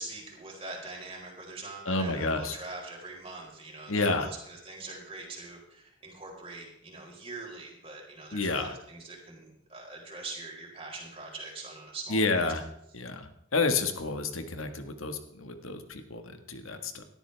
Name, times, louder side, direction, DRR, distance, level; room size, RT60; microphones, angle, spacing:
voice 1, 0.0-12.5, right 3 dB, 25° right, -2 dB, 4.4 m, -43 dB
voice 2, 1.8-2.6 3.9-4.3 8.3-8.7 12.1-12.6 12.9-17.0, left 3 dB, 85° left, 7 dB, 1.7 m, -30 dB
18.0 x 12.5 x 3.4 m, 0.77 s
head